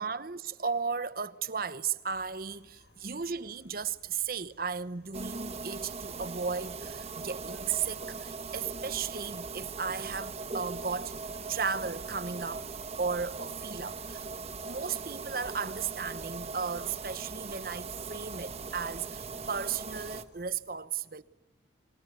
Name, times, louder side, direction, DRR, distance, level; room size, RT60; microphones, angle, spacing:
voice 1, 0.0-11.1 11.5-12.7 13.0-14.3 14.6-21.2, right 5 dB, 50° right, 1.0 m, -35 dB
sound 1, 2.1-20.6, left 1 dB, 80° left, 4.0 m, -62 dB
sound 2, 5.1-20.2, right 4 dB, 35° right, 1.2 m, -40 dB
26.5 x 24.0 x 9.4 m
head